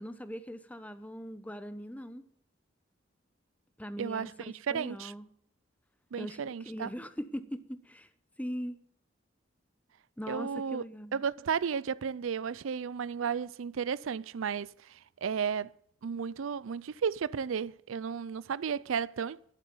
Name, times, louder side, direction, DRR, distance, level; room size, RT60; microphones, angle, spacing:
voice 1, 0.0-2.2 3.8-5.3 6.2-8.1 8.4-8.8 10.2-11.2, equal, 5° left, 0.9 m, -41 dB
voice 2, 4.0-5.1 6.1-6.9 10.3-10.8 11.1-15.7 16.0-19.4, right 6 dB, 80° right, 0.4 m, -33 dB
12.5 x 11.5 x 6.9 m
head